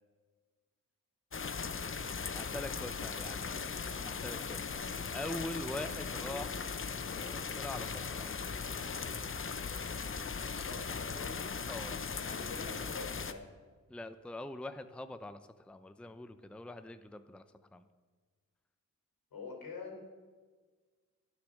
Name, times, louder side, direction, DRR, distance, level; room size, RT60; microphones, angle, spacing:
sound 1, 1.3-13.3, left 5 dB, 35° left, 0.8 m, -38 dB
voice 1, 2.3-4.9 5.1-6.5 7.1-8.4 11.7-12.0 13.9-17.4 17.7-17.9, left 2 dB, 5° left, 10 dB, 0.6 m, -43 dB
voice 2, 10.5-11.5 12.2-13.5 19.3-20.0, left 4 dB, 80° left, 2 dB, 3.6 m, -45 dB
11.5 x 9.9 x 6.5 m, 1.4 s
cardioid pair, 70°, 34 cm